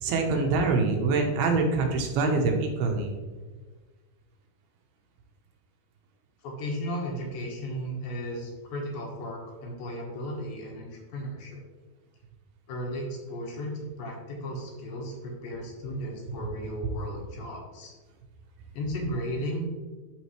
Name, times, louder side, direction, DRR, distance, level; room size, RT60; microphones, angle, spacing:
voice 1, 0.0-3.1, right 3 dB, 85° right, 2 dB, 2.8 m, -25 dB
voice 2, 6.4-11.6 12.7-17.9 18.7-19.6, equal, 70° left, 0 dB, 2.9 m, -35 dB
11.5 x 4.2 x 3.1 m, 1.3 s
omnidirectional pair, 4.4 m